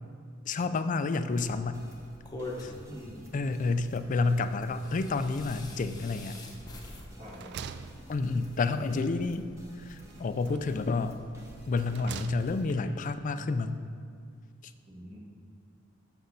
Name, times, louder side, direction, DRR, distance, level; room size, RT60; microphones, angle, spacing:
voice 1, 0.5-1.9 2.6-2.7 3.3-6.4 8.1-9.5 9.8-11.2 11.7-13.8 14.6-14.7, left 3 dB, 40° left, 11 dB, 0.4 m, -29 dB
sound 1, 1.3-12.6, equal, 15° right, 1.1 m, -55 dB
sound 2, 1.4-12.7, left 2 dB, 20° left, 0.9 m, -47 dB
voice 2, 2.9-3.2 7.2-7.6 14.9-15.2, equal, 40° right, -3 dB, 1.8 m, -45 dB
sound 3, 6.3-6.8 7.1-8.7 10.0-10.8 11.5-12.8, right 7 dB, 55° right, 0.3 m, -45 dB
6.9 x 6.4 x 5.4 m, 2.2 s
head